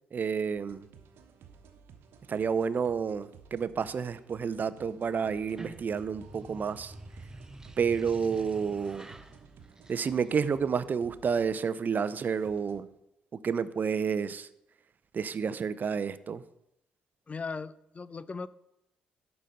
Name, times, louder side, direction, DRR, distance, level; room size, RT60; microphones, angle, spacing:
voice 1, 0.1-0.9 2.3-6.9 7.8-9.1 9.9-12.9 13.3-14.5 15.1-16.4, right 6 dB, 40° right, 15 dB, 0.6 m, -30 dB
sound 1, 0.6-12.8, right 6 dB, 60° right, 1.1 m, -56 dB
sound 2, 5.4-10.6, right 2 dB, 15° right, 0.8 m, -48 dB
voice 2, 17.3-18.5, left 4 dB, 30° left, 18 dB, 0.5 m, -38 dB
11.5 x 4.0 x 7.7 m, 0.82 s
figure-of-eight pair, 45°, 4 cm